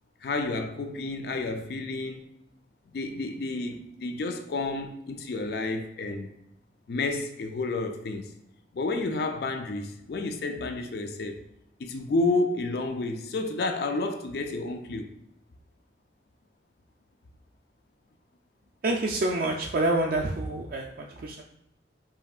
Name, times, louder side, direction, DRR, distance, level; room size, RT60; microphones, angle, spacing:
voice 1, 0.2-2.3 2.9-6.3 6.9-8.3 8.7-11.4 11.8-15.1, left 3 dB, 60° left, 6 dB, 0.4 m, -30 dB
voice 2, 18.8-21.4, right 2 dB, 50° right, -1 dB, 0.3 m, -27 dB
5.5 x 2.8 x 2.3 m, 0.81 s
head